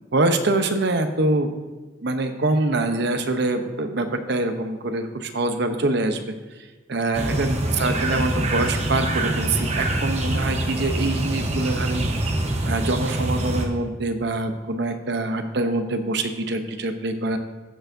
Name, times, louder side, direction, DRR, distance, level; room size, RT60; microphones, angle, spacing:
voice 1, 0.1-1.5 2.0-6.4 6.9-12.1 12.7-17.4, right 2 dB, 65° right, 7 dB, 0.8 m, -24 dB
sound 1, 7.1-13.7, right 1 dB, 35° right, 0.9 m, -25 dB
15.0 x 6.8 x 2.6 m, 1.2 s
head